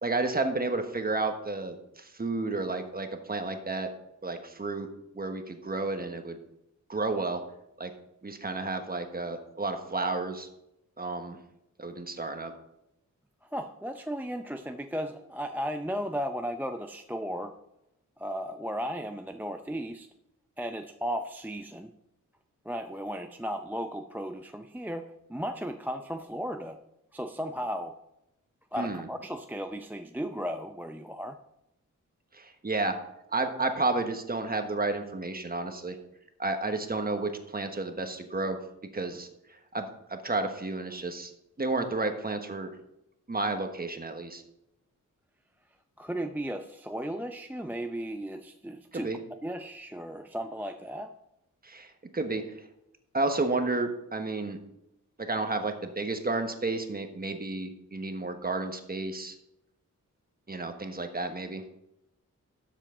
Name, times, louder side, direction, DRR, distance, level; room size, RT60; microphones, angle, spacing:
voice 1, 0.0-3.9 4.2-4.9 5.1-6.4 6.9-7.4 7.8-7.9 8.2-10.5 11.0-11.4 11.8-12.5 28.8-29.1 32.3-33.0 33.3-36.0 36.4-38.6 38.9-39.3 39.7-41.3 41.6-42.7 43.3-44.4 48.9-49.2 51.6-52.4 53.1-54.6 55.2-59.3 60.5-61.6, right 3 dB, 30° right, 6 dB, 1.3 m, -31 dB
voice 2, 13.5-17.5 18.2-20.1 20.6-21.9 22.7-26.8 27.1-27.9 28.7-31.4 46.0-49.1 49.4-51.1, equal, 5° right, 6 dB, 0.5 m, -35 dB
12.5 x 7.4 x 3.8 m, 0.85 s
wide cardioid pair, 80°, 31 cm